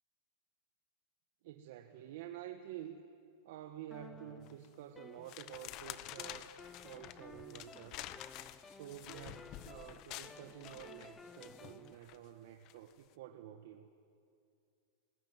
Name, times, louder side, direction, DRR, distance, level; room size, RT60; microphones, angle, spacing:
voice 1, 1.4-3.0 3.4-6.5 6.8-8.1 8.7-13.9, right 11 dB, 60° right, 6 dB, 1.5 m, -50 dB
sound 1, 3.9-5.8 6.2-12.0, left 4 dB, 10° left, 0.8 m, -56 dB
sound 2, 4.5-4.7 5.3-12.2 12.6-12.9, left 13 dB, 35° left, 1.1 m, -49 dB
28.0 x 20.5 x 9.7 m, 2.4 s
supercardioid pair, 160°, 0 cm